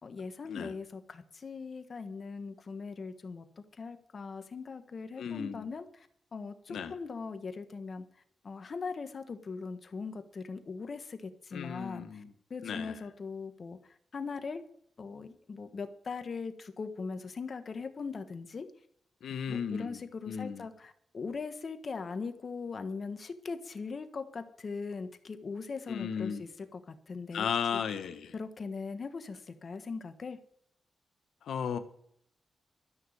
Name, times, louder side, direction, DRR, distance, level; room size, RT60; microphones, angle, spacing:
voice 1, 0.0-8.0 8.4-12.2 12.5-14.6 15.0-18.7 19.5-27.5 28.3-30.4, left 4 dB, 55° left, 9 dB, 1.5 m, -40 dB
voice 2, 5.2-5.7 6.7-6.9 11.5-12.3 12.6-13.0 19.2-20.0 20.3-20.7 25.9-26.4 27.3-28.3 31.4-31.8, left 7 dB, 85° left, 9 dB, 1.1 m, -35 dB
13.0 x 6.3 x 9.6 m, 0.67 s
cardioid pair, 55°, 0 cm